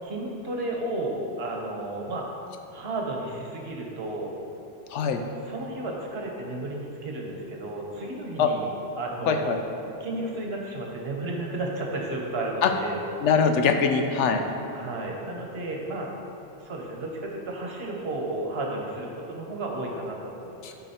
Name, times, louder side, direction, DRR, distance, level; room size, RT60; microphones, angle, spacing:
voice 1, 0.0-2.4 2.7-4.3 5.5-8.6 9.0-9.5 10.0-12.9 14.7-16.1 16.6-20.6, right 2 dB, 60° right, -1 dB, 1.1 m, -33 dB
voice 2, 4.9-5.2 8.4-8.5 9.3-9.6 12.6-12.7 13.2-14.4 20.6-20.7, left 6 dB, 90° left, 5 dB, 0.9 m, -22 dB
12.0 x 4.7 x 2.8 m, 2.8 s
omnidirectional pair, 1.2 m